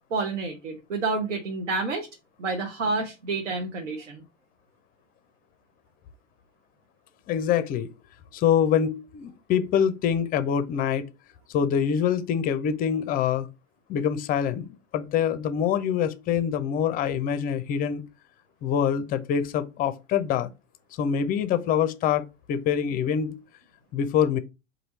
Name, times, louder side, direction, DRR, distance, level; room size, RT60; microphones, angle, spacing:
voice 1, 0.1-2.1 2.4-4.2, right 3 dB, 75° right, 0.9 m, -29 dB
voice 2, 7.3-7.9 8.3-11.0 11.5-13.5 13.9-18.0 18.6-20.5 21.0-23.3 23.9-24.4, left 8 dB, 25° left, 0.5 m, -25 dB
4.3 x 2.7 x 4.0 m
figure-of-eight pair, 85°, 37 cm